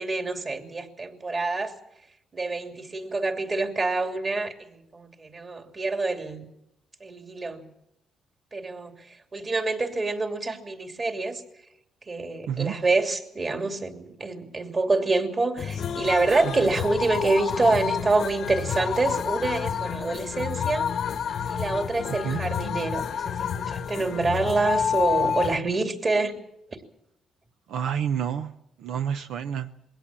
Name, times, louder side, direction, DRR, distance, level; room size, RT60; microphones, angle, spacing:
voice 1, 0.0-1.7 2.3-6.5 7.0-7.6 8.5-8.9 9.3-11.4 12.1-20.9 21.5-26.3, right 3 dB, 35° right, 5 dB, 2.9 m, -26 dB
sound 1, 15.6-25.6, left 7 dB, 60° left, 1.0 m, -29 dB
voice 2, 27.7-28.5 28.8-29.7, right 8 dB, 80° right, 9 dB, 0.7 m, -28 dB
21.5 x 17.0 x 7.5 m, 0.82 s
cardioid pair, 90°, 0 cm